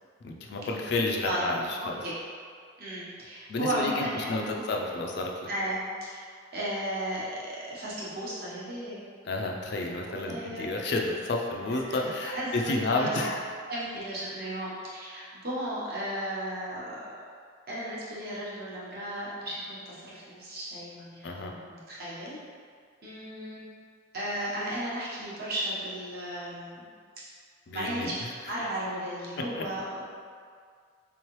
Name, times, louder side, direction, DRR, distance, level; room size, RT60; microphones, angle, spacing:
voice 1, 0.2-2.0 3.5-5.5 9.2-13.4 21.2-21.5 27.7-28.1 29.6-29.7, left 2 dB, 50° left, 1 dB, 0.3 m, -31 dB
voice 2, 2.8-4.6 5.5-6.2 6.5-9.0 10.0-10.7 11.7-13.3 13.7-17.0 17.7-22.4 23.0-23.6 24.1-26.9 27.7-30.1, right 1 dB, 45° right, -7 dB, 0.9 m, -35 dB
3.6 x 3.1 x 3.0 m, 2.1 s
head